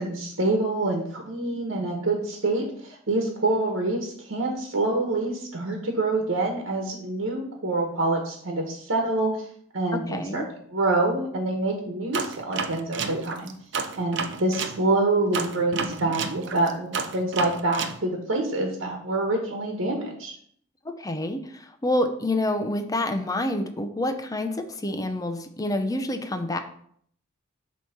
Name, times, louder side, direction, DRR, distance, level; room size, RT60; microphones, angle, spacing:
voice 1, 0.0-9.3 9.7-10.4 10.7-13.5 14.0-20.3, right 2 dB, 80° right, 1 dB, 1.2 m, -26 dB
voice 2, 9.9-10.5 20.8-26.6, left 1 dB, 20° left, 7 dB, 0.6 m, -28 dB
sound 1, 12.1-14.8 15.3-18.0, right 5 dB, 60° right, 0.6 m, -30 dB
7.9 x 3.1 x 5.7 m, 0.63 s
head